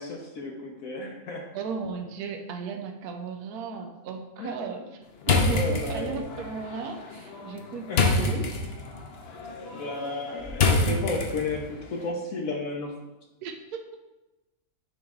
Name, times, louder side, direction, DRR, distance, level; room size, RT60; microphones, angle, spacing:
voice 1, 0.0-1.5 4.4-4.7 5.5-6.1 7.9-8.1 9.5-12.9, left 2 dB, 70° left, 1 dB, 1.2 m, -33 dB
voice 2, 1.5-4.9 5.3-8.5 13.4-14.0, right 5 dB, 85° right, 4 dB, 1.1 m, -35 dB
sound 1, 5.2-11.7, left 3 dB, 50° left, 0.8 m, -27 dB
9.3 x 3.1 x 3.6 m, 1.1 s
omnidirectional pair, 1.6 m